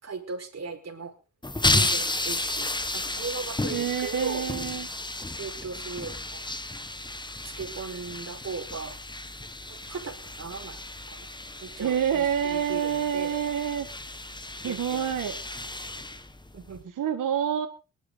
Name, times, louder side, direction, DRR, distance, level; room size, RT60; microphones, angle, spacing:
voice 1, 0.0-1.1 1.7-4.5 5.4-6.4 7.4-9.0 9.7-10.8 11.1-11.3 11.6-13.4 14.6-15.1 16.5-16.9, right 4 dB, 50° right, 4 dB, 4.9 m, -37 dB
sound 1, 1.4-16.8, left 2 dB, 15° left, 1.6 m, -33 dB
voice 2, 3.7-4.9 11.8-13.9 14.6-15.4 17.0-17.7, right 9 dB, 70° right, 7 dB, 1.6 m, -27 dB
20.0 x 12.0 x 4.0 m, 0.34 s
supercardioid pair, 55°, 34 cm